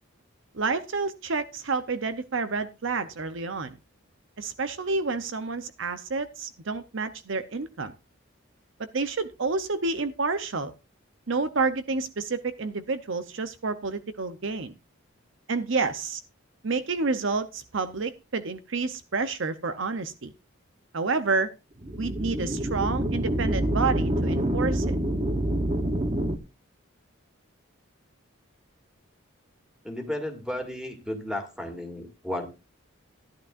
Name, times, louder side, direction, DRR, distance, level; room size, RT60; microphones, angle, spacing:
voice 1, 0.5-3.7 4.4-7.9 8.8-10.7 11.3-14.7 15.5-16.2 16.6-20.3 20.9-21.5 22.0-25.0, right 4 dB, 60° right, 11 dB, 0.7 m, -29 dB
sound 1, 21.8-26.4, right 1 dB, 25° right, 1.0 m, -26 dB
voice 2, 29.8-32.4, left 1 dB, 5° right, 4 dB, 2.3 m, -33 dB
15.0 x 11.0 x 2.5 m, 0.27 s
head